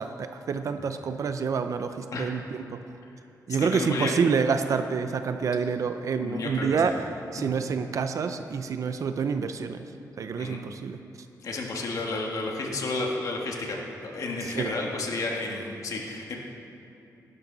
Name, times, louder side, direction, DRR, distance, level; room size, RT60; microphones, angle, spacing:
voice 1, 0.0-2.8 3.5-9.8 10.2-11.0 14.4-14.7, right 5 dB, 55° right, 9 dB, 0.6 m, -28 dB
voice 2, 3.6-4.1 6.2-6.9 7.4-7.5 10.4-10.6 11.4-13.8 14.0-16.3, left 3 dB, 55° left, 0 dB, 1.7 m, -32 dB
17.0 x 12.0 x 4.0 m, 2.9 s
wide cardioid pair, 155°, 7 cm